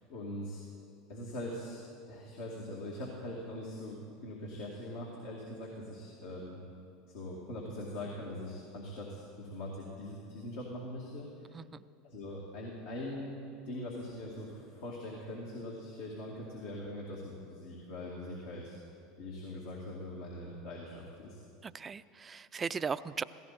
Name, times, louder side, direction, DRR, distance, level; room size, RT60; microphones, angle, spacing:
voice 1, 0.1-0.6 1.1-6.6 7.1-11.5 12.0-13.4 13.6-18.8 19.2-21.4, left 1 dB, 70° left, -3 dB, 2.3 m, -42 dB
voice 2, 21.6-23.2, right 6 dB, 25° right, 15 dB, 0.4 m, -37 dB
16.5 x 16.0 x 4.2 m, 2.5 s
hypercardioid pair, 85°, 0 cm